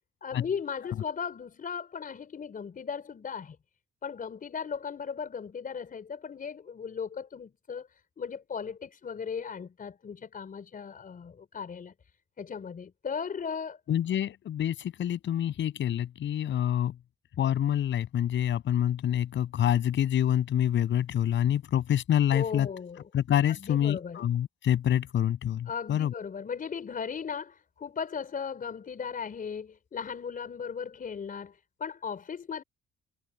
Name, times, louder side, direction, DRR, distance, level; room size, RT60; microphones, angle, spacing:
voice 1, 0.2-3.6 4.0-7.9 8.2-11.9 12.4-13.8 22.3-23.0 23.6-24.2 25.7-32.6, left 6 dB, 45° left, 5.2 m, -37 dB
voice 2, 13.9-16.9 17.4-22.7 23.1-26.1, left 10 dB, 70° left, 7.3 m, -27 dB
cardioid pair, 90°, 20 cm